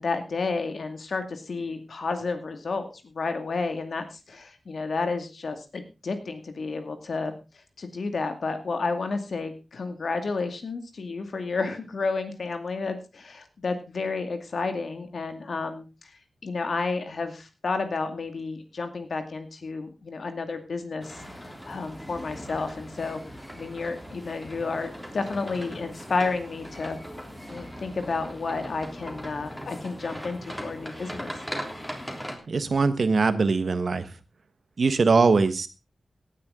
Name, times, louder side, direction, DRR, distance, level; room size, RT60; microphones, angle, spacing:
voice 1, 0.0-7.3 7.8-16.1 16.4-23.2 23.5-27.0 27.5-31.4, left 4 dB, 65° left, 8 dB, 2.3 m, -31 dB
sound 1, 21.0-32.4, equal, 5° left, 3.3 m, -39 dB
voice 2, 32.5-34.1 34.8-35.7, right 4 dB, 60° right, 12 dB, 1.4 m, -21 dB
17.5 x 9.9 x 3.8 m, 0.29 s
wide cardioid pair, 90°, 0 cm